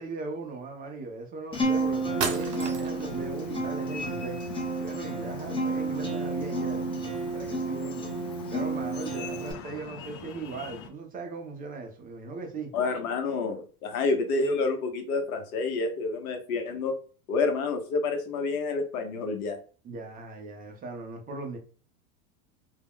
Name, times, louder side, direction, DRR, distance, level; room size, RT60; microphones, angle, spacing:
voice 1, 0.0-4.4 4.8-8.1 8.5-12.7 19.8-21.6, right 3 dB, 20° right, 0.4 m, -38 dB
sound 1, 1.5-10.9, left 7 dB, 45° left, 0.5 m, -43 dB
Acoustic guitar, 1.5-9.5, right 2 dB, 10° left, 0.7 m, -31 dB
sound 2, 2.2-3.1, right 5 dB, 55° right, 1.0 m, -32 dB
voice 2, 12.7-16.9 17.3-19.6, left 3 dB, 75° left, 0.9 m, -28 dB
2.3 x 2.1 x 3.4 m
supercardioid pair, 120°, 44 cm